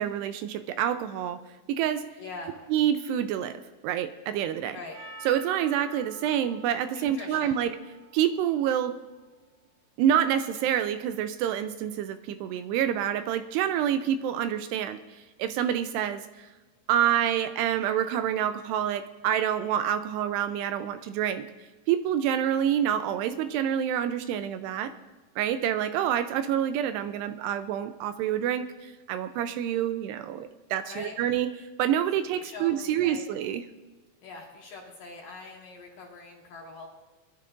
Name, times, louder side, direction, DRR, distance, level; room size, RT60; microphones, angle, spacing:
voice 1, 0.0-1.4 1.7-2.0 2.7-4.8 5.3-7.7 8.1-8.9 10.0-15.0 15.4-16.2 16.9-21.5 21.9-24.9 25.4-31.5 31.8-33.6, right 10 dB, 85° right, 10 dB, 2.5 m, -27 dB
voice 2, 2.2-2.5 4.7-5.0 6.9-7.6 30.9-31.2 32.3-33.2 34.2-36.9, left 3 dB, 60° left, -2 dB, 2.8 m, -43 dB
Percussion, 4.9-9.5, right 3 dB, 65° right, 5.6 m, -49 dB
23.5 x 12.5 x 2.5 m, 1.2 s
omnidirectional pair, 5.1 m